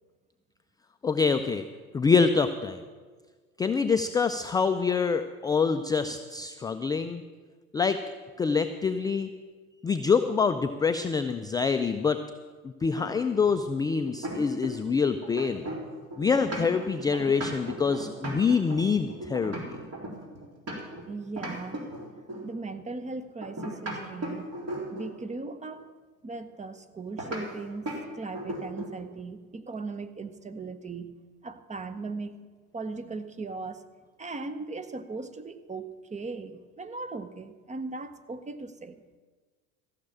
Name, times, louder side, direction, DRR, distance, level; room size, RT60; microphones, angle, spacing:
voice 1, 1.0-1.6 1.9-2.8 3.6-7.2 7.7-8.0 8.4-9.3 9.8-12.2 12.8-15.7 16.2-19.5, left 5 dB, 10° left, 8 dB, 0.3 m, -25 dB
sound 1, 13.0-14.9 15.2-21.0 21.4-22.5 23.4-25.2 27.2-27.4 27.9-28.0 28.3-29.0, right 1 dB, 35° right, 3.7 m, -37 dB
voice 2, 21.1-22.0 22.4-24.5 24.9-26.0 26.2-31.2 31.4-32.3 32.7-33.8 34.2-39.0, right 3 dB, 15° right, 11 dB, 0.8 m, -38 dB
14.5 x 6.6 x 8.8 m, 1.5 s
figure-of-eight pair, 70°, 43 cm